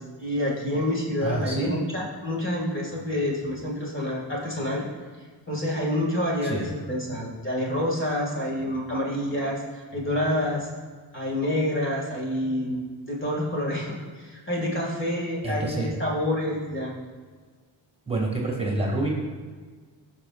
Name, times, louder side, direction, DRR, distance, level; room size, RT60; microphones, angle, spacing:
voice 1, 0.0-4.9 5.5-10.7 11.1-12.8 13.1-16.9, left 1 dB, 25° left, -2 dB, 2.3 m, -28 dB
voice 2, 1.2-1.7 6.4-6.7 15.4-15.9 18.1-19.1, right 2 dB, 10° right, -2 dB, 2.3 m, -27 dB
15.5 x 5.7 x 2.5 m, 1.5 s
supercardioid pair, 60°, 48 cm